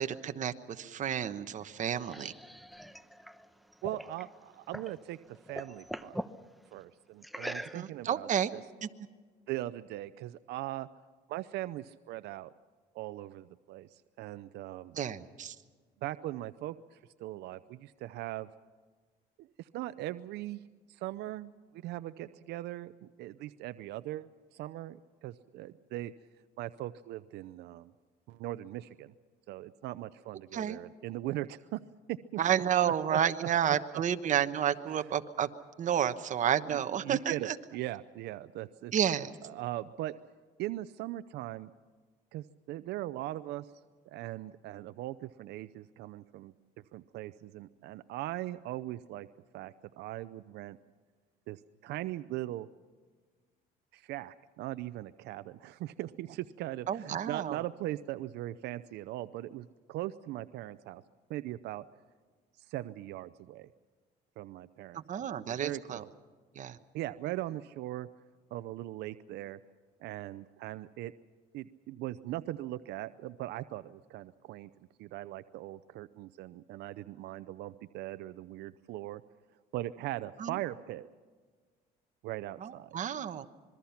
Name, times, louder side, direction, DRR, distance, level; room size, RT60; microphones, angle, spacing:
voice 1, 0.0-2.3 7.7-8.5 8.8-8.9 14.9-15.6 30.5-30.8 32.4-35.5 35.8-37.6 38.9-39.4 56.9-57.6 65.1-66.0 66.5-66.8 80.4-80.6 82.6-83.5, right 9 dB, 45° right, 9 dB, 1.2 m, -31 dB
sound 1, 1.6-5.0 5.3-6.4 7.2-8.1, equal, ahead, 0.9 m, -42 dB
voice 2, 3.8-6.2 6.7-8.6 9.5-10.9 11.3-12.5 12.9-14.9 16.0-18.5 19.6-20.6 20.9-26.1 26.6-27.9 28.3-29.1 29.5-31.8 32.1-32.4 33.1-33.2 36.7-38.9 39.4-40.1 40.6-41.7 42.3-43.7 44.1-46.5 46.9-49.3 49.5-50.8 51.5-52.7 53.9-61.0 61.3-61.8 62.6-63.7 64.4-66.1 66.9-68.1 68.5-69.6 70.0-71.1 71.5-74.7 75.0-79.2 79.7-81.1 82.2-83.0, right 15 dB, 80° right, 13 dB, 0.6 m, -40 dB
26.0 x 22.0 x 5.8 m, 1.5 s
cardioid pair, 110°, 17 cm